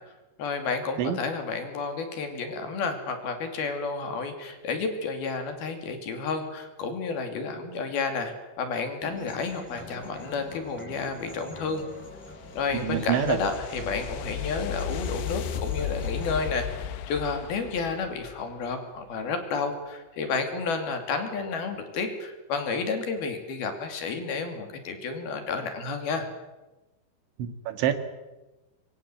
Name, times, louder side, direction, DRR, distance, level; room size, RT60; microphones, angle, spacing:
voice 1, 0.4-11.8 12.5-26.3, left 4 dB, 60° left, 6 dB, 4.4 m, -31 dB
sound 1, 9.0-16.4, left 1 dB, ahead, 4.8 m, -44 dB
sound 2, 11.5-18.8, left 10 dB, 75° left, 3.0 m, -35 dB
voice 2, 12.8-13.4 27.4-27.9, right 10 dB, 85° right, 10 dB, 4.1 m, -26 dB
25.0 x 23.5 x 7.9 m, 1.1 s
omnidirectional pair, 5.3 m